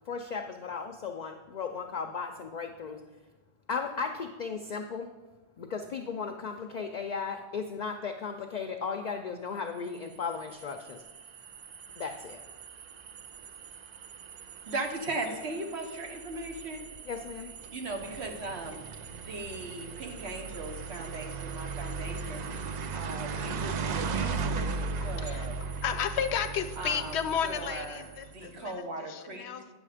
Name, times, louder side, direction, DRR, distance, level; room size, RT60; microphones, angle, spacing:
voice 1, 0.0-3.0 3.7-5.1 5.6-11.0 12.0-12.4 17.0-17.5, left 5 dB, 55° left, 6 dB, 0.5 m, -36 dB
sound 1, 9.9-28.5, right 5 dB, 55° right, 0.5 m, -38 dB
voice 2, 14.7-16.8 17.7-18.8 19.1-22.4 22.9-24.7 25.0-25.5 26.8-27.1 27.4-28.0 28.3-29.7, right 2 dB, 75° right, 4 dB, 1.3 m, -38 dB
voice 3, 25.0-29.7, left 8 dB, 85° left, 9 dB, 0.9 m, -33 dB
8.8 x 6.4 x 4.9 m, 1.2 s
omnidirectional pair, 1.1 m